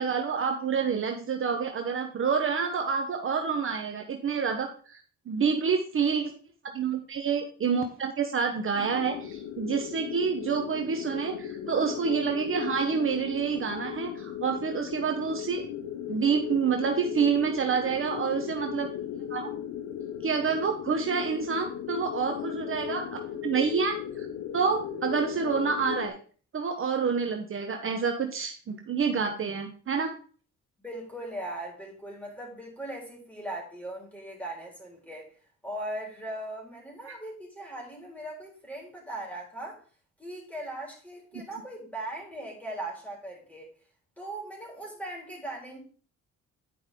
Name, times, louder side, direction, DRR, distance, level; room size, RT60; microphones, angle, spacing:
voice 1, 0.0-5.0 5.3-6.3 6.7-15.6 16.1-18.9 19.3-19.5 20.2-24.3 24.5-26.2 26.5-30.1 37.1-37.2, right 6 dB, 45° right, 4 dB, 1.0 m, -28 dB
sound 1, 8.7-26.1, left 10 dB, 85° left, 1.0 m, -37 dB
voice 2, 30.8-35.3 35.6-39.8 40.2-43.7 44.2-45.8, right 1 dB, 5° left, -2 dB, 4.0 m, -39 dB
10.5 x 5.3 x 3.7 m, 0.41 s
cardioid pair, 90°, 30 cm